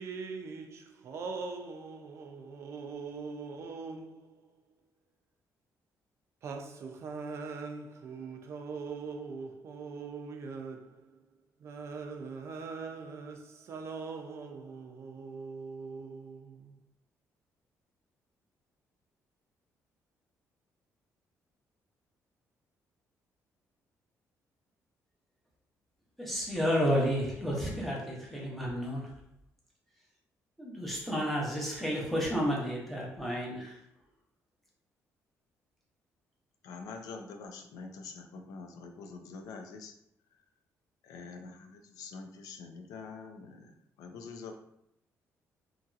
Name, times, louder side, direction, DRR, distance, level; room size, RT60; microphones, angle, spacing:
voice 1, 0.0-4.5 6.4-11.2 11.6-16.8, right 4 dB, 50° right, 4 dB, 0.4 m, -42 dB
voice 2, 26.2-29.1 30.6-33.8, equal, 5° left, -4 dB, 0.7 m, -31 dB
voice 3, 36.6-39.9 41.0-43.7 44.0-44.5, left 4 dB, 90° left, 5 dB, 0.4 m, -45 dB
2.9 x 2.7 x 2.3 m, 0.75 s
cardioid pair, 160°, 6 cm